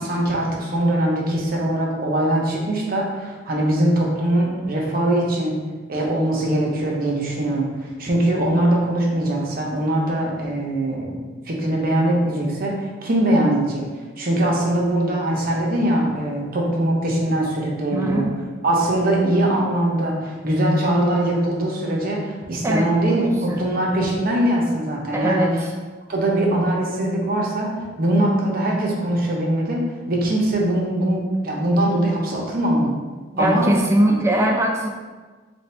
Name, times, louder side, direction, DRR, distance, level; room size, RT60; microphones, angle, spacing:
voice 1, 0.0-5.5 5.9-11.2 11.5-13.9 14.2-18.2 18.6-25.5 26.1-27.7 28.0-32.9 33.4-33.7 34.1-34.2, right 1 dB, 50° right, -2 dB, 0.8 m, -21 dB
voice 2, 17.9-18.4 22.6-23.7 25.1-25.7 33.3-34.9, right 1 dB, 15° right, 1 dB, 0.4 m, -21 dB
3.3 x 2.6 x 4.3 m, 1.4 s
head